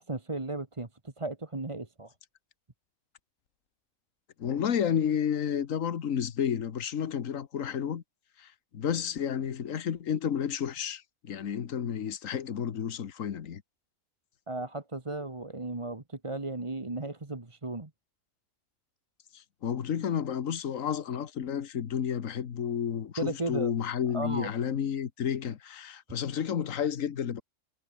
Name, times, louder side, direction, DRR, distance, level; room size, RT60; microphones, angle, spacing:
voice 1, 0.0-2.1 14.5-17.9 23.2-23.8 24.1-24.5, right 2 dB, 20° right, 1.7 m, -35 dB
voice 2, 4.4-8.0 8.4-13.6 19.3-27.4, left 8 dB, 70° left, 1.6 m, -31 dB
omnidirectional pair, 1.4 m